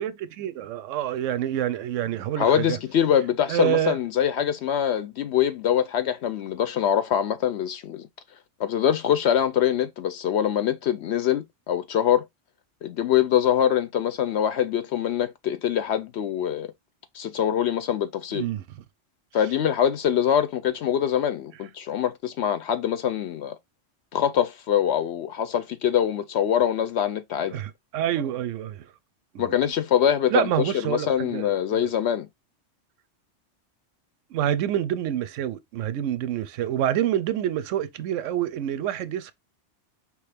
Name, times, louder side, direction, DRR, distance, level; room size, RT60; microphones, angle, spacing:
voice 1, 0.0-2.8 3.5-4.0 18.3-18.6 27.5-28.9 29.3-29.7 30.3-31.5 31.8-31.9 34.3-39.3, right 11 dB, 90° right, 0.9 m, -27 dB
voice 2, 2.4-8.1 8.6-12.3 12.8-16.7 17.1-18.5 19.3-23.6 24.1-27.6 29.4-32.3, left 9 dB, 70° left, 0.8 m, -24 dB
4.9 x 3.1 x 3.3 m
omnidirectional pair, 1.3 m